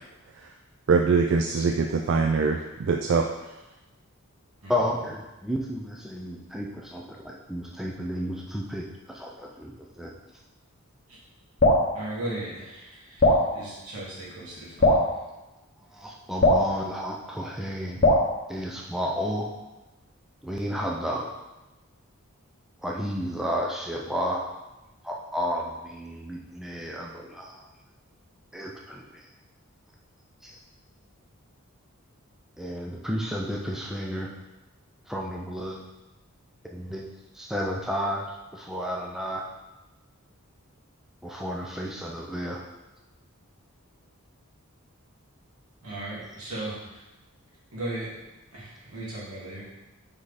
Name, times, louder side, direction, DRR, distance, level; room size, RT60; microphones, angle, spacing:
voice 1, 0.9-3.3, right 4 dB, 55° right, 4 dB, 0.3 m, -23 dB
voice 2, 4.7-10.1 15.9-18.0 18.5-19.5 20.4-21.3 22.8-24.4 25.0-27.7 28.5-29.0 30.4-30.6 32.6-34.3 35.1-35.8 36.6-37.1 37.3-38.3 38.5-39.4 41.2-42.6, equal, ahead, -2 dB, 0.5 m, -32 dB
Drip, 11.6-11.9 13.2-13.5 14.8-15.1 16.4-16.7 18.0-18.3, left 1 dB, 40° left, 1.0 m, -18 dB
voice 3, 11.9-15.0 45.8-47.0 47.7-48.1 48.5-49.6, right 1 dB, 85° right, -6 dB, 2.3 m, -37 dB
5.3 x 4.9 x 4.0 m, 1.0 s
head